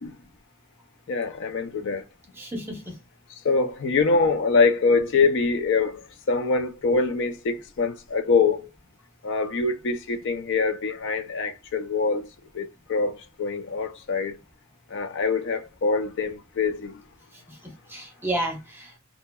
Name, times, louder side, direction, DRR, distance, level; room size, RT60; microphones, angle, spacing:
voice 1, 1.1-2.0 3.3-8.7 9.2-12.3 12.5-14.4 14.9-17.0, left 4 dB, 55° left, 0.4 m, -24 dB
voice 2, 2.4-3.0 17.3-19.0, right 1 dB, 10° right, 0.7 m, -32 dB
2.7 x 2.4 x 2.2 m
head